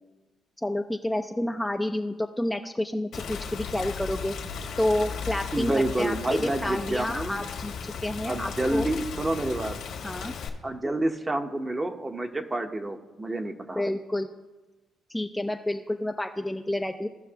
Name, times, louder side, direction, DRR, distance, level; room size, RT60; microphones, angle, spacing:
voice 1, 0.6-4.3 4.8-8.9 10.0-10.3 13.7-14.3 15.1-17.1, left 1 dB, 5° left, 4 dB, 0.4 m, -29 dB
Rain, 3.1-10.5, left 6 dB, 75° left, 1.5 m, -36 dB
voice 2, 5.5-7.4 8.3-9.8 10.6-13.8, right 2 dB, 20° right, 6 dB, 0.9 m, -29 dB
16.5 x 5.8 x 2.9 m, 1.2 s
cardioid pair, 90°, 0 cm